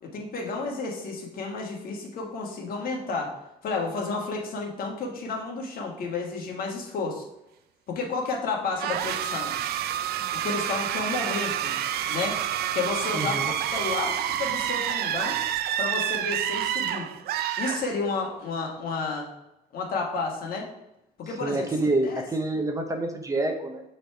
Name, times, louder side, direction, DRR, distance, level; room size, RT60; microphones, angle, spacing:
voice 1, 0.0-3.4 3.6-7.2 7.9-9.5 10.4-11.8 12.1-12.4 12.7-15.4 15.8-17.1 17.6-19.3 19.7-20.7 21.2-21.7 22.0-22.2, left 4 dB, 60° left, 0 dB, 1.6 m, -31 dB
sound 1, 8.8-18.3, right 11 dB, 65° right, 0.5 m, -28 dB
voice 2, 13.1-13.5 21.4-23.8, right 2 dB, 20° right, 5 dB, 0.7 m, -27 dB
6.7 x 3.4 x 4.5 m, 0.88 s
cardioid pair, 110°, 17 cm